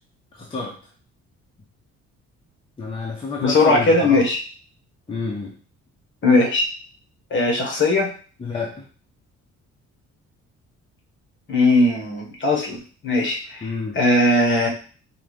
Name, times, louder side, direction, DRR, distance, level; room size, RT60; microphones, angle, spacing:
voice 1, 0.3-0.8 2.8-4.2 5.1-5.5 8.4-8.8 13.6-14.0, left 4 dB, 20° left, -2 dB, 0.8 m, -29 dB
voice 2, 3.4-4.4 6.2-6.6 7.3-8.1 11.5-12.8 13.0-14.7, left 2 dB, 40° left, 1 dB, 1.3 m, -19 dB
4.8 x 2.4 x 3.4 m, 0.39 s
cardioid pair, 125°, 29 cm